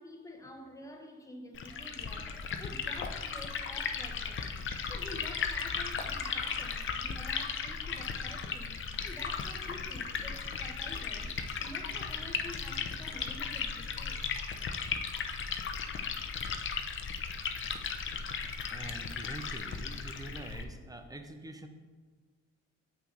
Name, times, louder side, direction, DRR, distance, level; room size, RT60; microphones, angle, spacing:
voice 1, 0.0-14.2, left 1 dB, 10° left, 0.9 m, -48 dB
Liquid, 1.5-20.6, left 6 dB, 40° left, 0.6 m, -36 dB
voice 2, 18.7-21.7, right 2 dB, 10° right, 0.6 m, -45 dB
7.7 x 5.7 x 2.5 m
cardioid pair, 80°, 30 cm